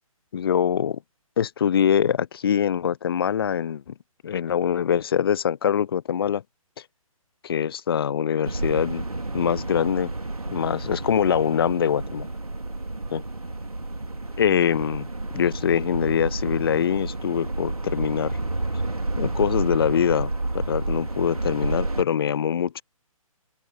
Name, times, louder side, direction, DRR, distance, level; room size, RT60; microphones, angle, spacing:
voice 1, 0.3-1.0 1.4-3.8 4.2-6.4 7.4-9.0 9.3-10.1 10.5-12.3 13.1-13.2 14.4-15.1 15.3-18.4 19.2-22.8, left 8 dB, 40° left, 0.7 m, -23 dB
sound 1, 8.4-22.0, right 2 dB, 80° right, 3.6 m, -30 dB
open air
figure-of-eight pair, 135°, 18 cm